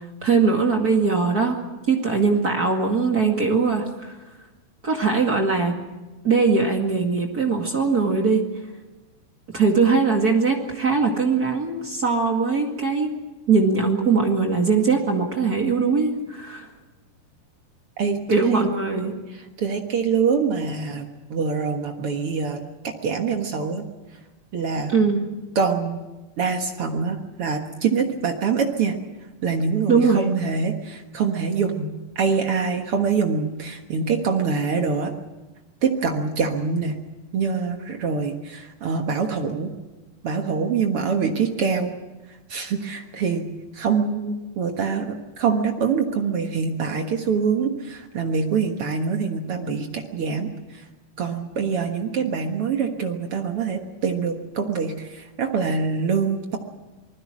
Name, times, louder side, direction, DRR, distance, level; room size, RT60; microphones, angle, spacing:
voice 1, 0.2-1.6 1.9-4.1 4.8-5.7 6.2-8.4 9.5-13.1 13.5-16.7 18.3-19.1 24.9-25.2 29.9-30.2, right 4 dB, 35° right, 2 dB, 1.5 m, -21 dB
voice 2, 18.0-18.6 19.6-23.8 24.5-24.9 25.5-26.0 26.4-29.0 29.4-31.9 32.1-35.1 35.8-37.0 37.3-39.7 40.2-41.9 42.5-43.5 43.7-50.5 51.2-56.6, right 5 dB, 70° right, 4 dB, 1.3 m, -24 dB
27.0 x 20.0 x 6.2 m, 1.1 s
omnidirectional pair, 5.0 m